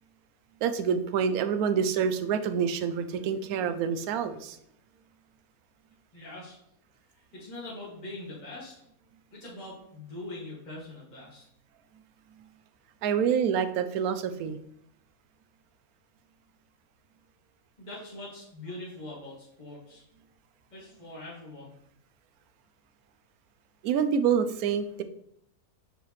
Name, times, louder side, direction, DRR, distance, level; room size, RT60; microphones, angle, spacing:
voice 1, 0.6-4.6 12.4-12.5 13.0-14.6 23.8-25.0, right 7 dB, 75° right, 10 dB, 1.0 m, -27 dB
voice 2, 6.1-6.6 7.1-8.7 9.3-11.4 17.8-20.0 20.7-21.7, left 2 dB, 30° left, -7 dB, 2.1 m, -42 dB
6.4 x 4.9 x 3.1 m, 0.74 s
omnidirectional pair, 1.6 m